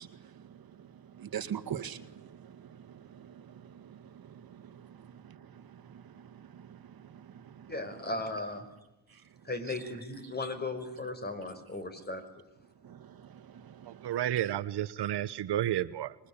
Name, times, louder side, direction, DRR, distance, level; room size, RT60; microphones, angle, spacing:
voice 1, 0.0-7.7 9.1-9.3 12.8-14.2, right 9 dB, 60° right, 2.0 m, -45 dB
voice 2, 7.7-8.7 9.4-12.3, left 2 dB, 25° left, 5.4 m, -36 dB
voice 3, 13.9-16.1, right 12 dB, 75° right, 1.2 m, -31 dB
26.0 x 22.5 x 8.8 m
cardioid pair, 105°, 40 cm